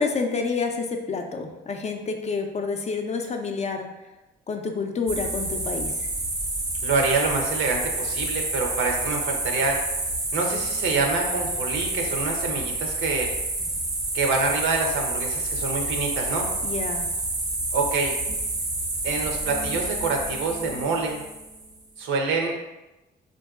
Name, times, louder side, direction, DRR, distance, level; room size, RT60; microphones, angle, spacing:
voice 1, 0.0-3.9 4.5-6.1 16.6-17.1, left 4 dB, 35° left, 4 dB, 0.4 m, -28 dB
sound 1, 5.1-21.8, right 2 dB, 20° right, 0.5 m, -29 dB
voice 2, 6.8-9.8 10.3-13.3 14.1-16.5 17.7-18.2 19.0-21.2 22.0-22.7, right 3 dB, 80° right, 2 dB, 0.6 m, -26 dB
3.7 x 2.6 x 2.3 m, 1.0 s
cardioid pair, 90°, 20 cm